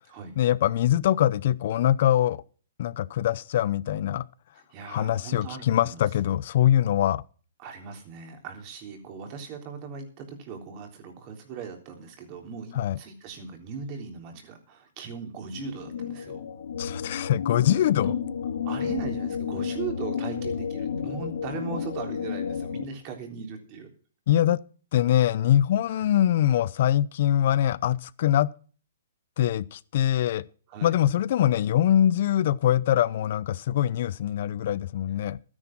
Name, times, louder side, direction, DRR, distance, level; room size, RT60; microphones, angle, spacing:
voice 1, 0.4-2.4 2.8-4.3 4.9-7.2 12.8-13.0 16.8-18.2 24.3-24.6 24.9-28.5 29.4-30.5 30.8-35.4, left 11 dB, 50° left, 0.6 m, -23 dB
voice 2, 4.6-6.0 7.6-16.4 18.0-18.1 18.6-23.9 25.9-26.1 30.7-30.9, right 6 dB, 35° right, 3.5 m, -39 dB
sound 1, 15.5-22.8, left 7 dB, 80° left, 2.3 m, -32 dB
13.0 x 10.0 x 6.0 m
hypercardioid pair, 150°, 0 cm